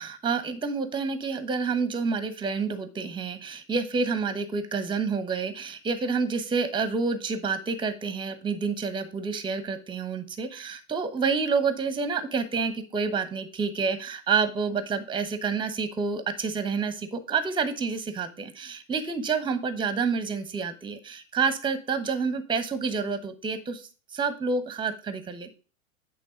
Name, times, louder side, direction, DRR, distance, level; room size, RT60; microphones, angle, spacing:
voice 1, 0.0-25.5, right 5 dB, 10° right, 11 dB, 0.9 m, -28 dB
8.5 x 3.6 x 5.0 m, 0.36 s
hypercardioid pair, 100°, 41 cm